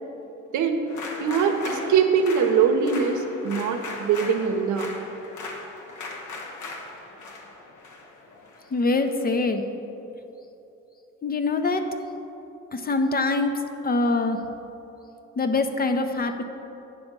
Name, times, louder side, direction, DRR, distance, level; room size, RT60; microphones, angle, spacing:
voice 1, 0.5-0.8 1.2-4.9, right 6 dB, 75° right, 5 dB, 0.8 m, -22 dB
sound 1, 0.9-9.2, left 3 dB, 75° left, 1.1 m, -38 dB
voice 2, 8.7-9.6 11.2-11.9 12.7-14.4 15.4-16.4, left 3 dB, 30° left, 7 dB, 0.6 m, -24 dB
9.1 x 3.5 x 6.6 m, 3.0 s
cardioid pair, 90°, 30 cm